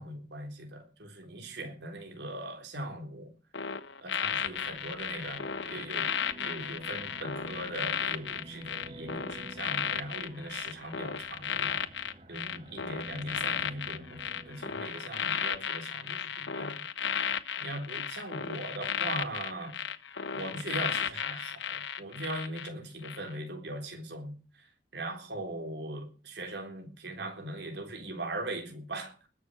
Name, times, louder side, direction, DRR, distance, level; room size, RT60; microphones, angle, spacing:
voice 1, 0.0-3.3 4.0-11.9 12.3-19.8 20.3-29.2, right 1 dB, 70° right, 3.8 m, -40 dB
sound 1, 3.5-22.7 23.0-23.3, left 7 dB, 90° left, 1.2 m, -34 dB
sound 2, 4.2-15.0, right 1 dB, 35° right, 1.4 m, -50 dB
20.0 x 7.2 x 7.7 m
head